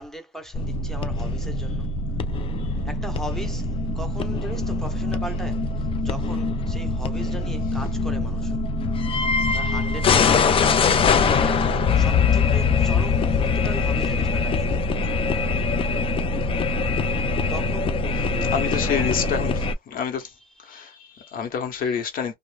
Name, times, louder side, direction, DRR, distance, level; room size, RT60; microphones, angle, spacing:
voice 1, 0.0-1.9 2.8-3.7 3.9-8.6 9.5-14.8 17.5-19.7 20.2-20.9 21.8-22.0, equal, 5° left, 0.8 m, -39 dB
sound 1, 0.5-19.7, left 4 dB, 35° left, 0.4 m, -23 dB
voice 2, 18.4-19.5 19.9-20.3 20.7-22.3, left 7 dB, 55° left, 1.0 m, -28 dB
2.5 x 2.1 x 3.3 m
cardioid pair, 110°, 17 cm